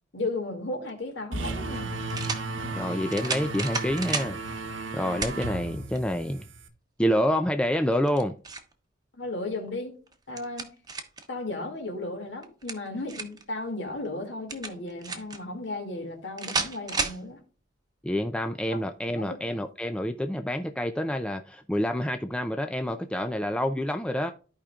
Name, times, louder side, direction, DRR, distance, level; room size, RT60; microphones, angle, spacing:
voice 1, 0.1-2.0 9.1-10.0 10.3-10.7 11.3-17.4 19.1-19.3, left 2 dB, 65° left, 2.3 m, -35 dB
sound 1, 0.8-0.9 2.1-2.5 3.1-4.3 5.2-5.4 6.0-6.1 7.9-8.7 10.1-11.3 12.4-13.4 14.5-15.4 16.4-17.2, right 4 dB, 20° right, 1.0 m, -32 dB
sound 2, 1.3-6.7, right 2 dB, 70° right, 1.1 m, -34 dB
voice 2, 2.7-4.4 4.9-6.4 7.0-8.3 18.0-24.3, equal, 5° left, 0.3 m, -28 dB
14.0 x 5.0 x 2.4 m
head